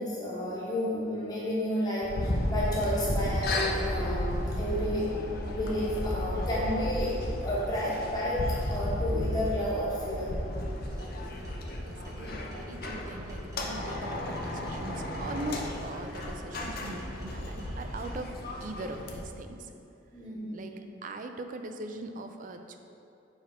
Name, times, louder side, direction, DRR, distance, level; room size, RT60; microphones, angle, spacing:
voice 1, 0.0-5.1 5.5-10.3 20.1-20.7, equal, 20° left, -8 dB, 1.1 m, -31 dB
sound 1, 2.0-19.2, left 1 dB, 50° left, 0.6 m, -34 dB
sound 2, 11.0-18.4, equal, 15° right, 0.8 m, -45 dB
voice 2, 11.8-18.3 18.6-19.7 20.5-22.8, right 2 dB, 45° right, 6 dB, 0.4 m, -41 dB
7.0 x 3.4 x 4.4 m, 2.7 s
head